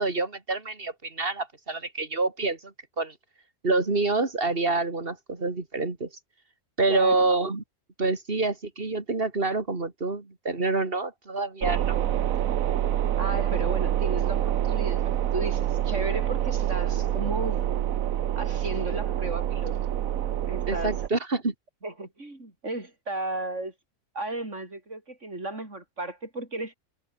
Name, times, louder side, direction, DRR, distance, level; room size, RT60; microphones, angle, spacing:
voice 1, 0.0-3.1 3.6-6.1 6.8-7.6 8.0-12.0 20.7-21.5, right 3 dB, 45° right, 3.0 m, -27 dB
sound 1, 11.6-21.1, right 11 dB, 85° right, 1.2 m, -26 dB
voice 2, 13.2-17.7 18.4-19.8 20.5-20.9 21.8-23.7 24.1-26.7, right 2 dB, 60° right, 5.9 m, -34 dB
omnidirectional pair, 1.4 m